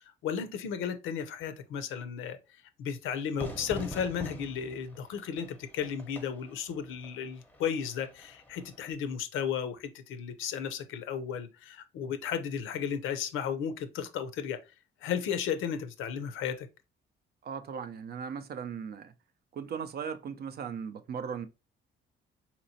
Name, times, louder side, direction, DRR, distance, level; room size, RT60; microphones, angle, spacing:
voice 1, 0.2-2.4 2.8-14.6 15.0-16.7, left 7 dB, 90° left, 0.5 m, -34 dB
Fire / Fireworks, 3.4-8.9, left 1 dB, 10° left, 0.7 m, -45 dB
voice 2, 17.4-19.1 19.5-21.5, right 6 dB, 50° right, 0.5 m, -38 dB
4.1 x 2.9 x 2.7 m
cardioid pair, 90°, 20 cm